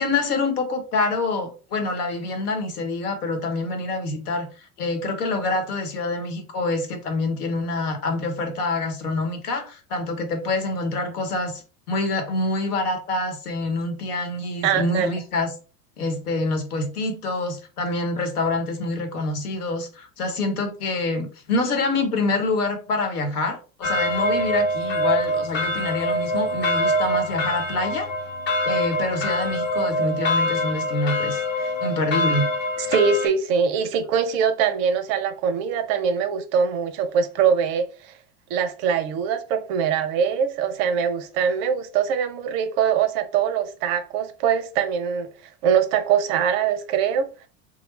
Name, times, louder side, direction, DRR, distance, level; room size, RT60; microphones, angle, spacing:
voice 1, 0.0-11.6 11.9-15.5 16.0-28.1 28.6-32.5, left 2 dB, 70° left, 1.1 m, -26 dB
voice 2, 14.6-15.1 32.8-38.1 38.5-45.3 45.6-47.5, right 7 dB, 40° right, 0.5 m, -23 dB
sound 1, 23.8-33.3, equal, 25° left, 0.8 m, -24 dB
3.1 x 2.1 x 3.1 m
figure-of-eight pair, 85°, 47 cm